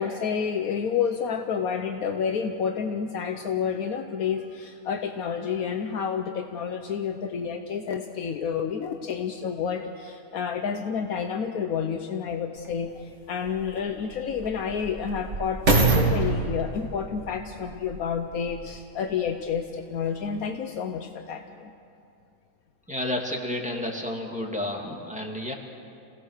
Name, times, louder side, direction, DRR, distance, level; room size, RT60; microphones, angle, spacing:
voice 1, 0.0-21.7, left 7 dB, 75° left, 6 dB, 1.3 m, -29 dB
sound 1, 12.6-12.7 13.5-18.8 19.4-19.5, right 3 dB, 50° right, 2.7 m, -26 dB
voice 2, 22.9-25.5, left 1 dB, 5° right, 0 dB, 2.2 m, -31 dB
27.5 x 18.0 x 6.6 m, 2.5 s
omnidirectional pair, 1.5 m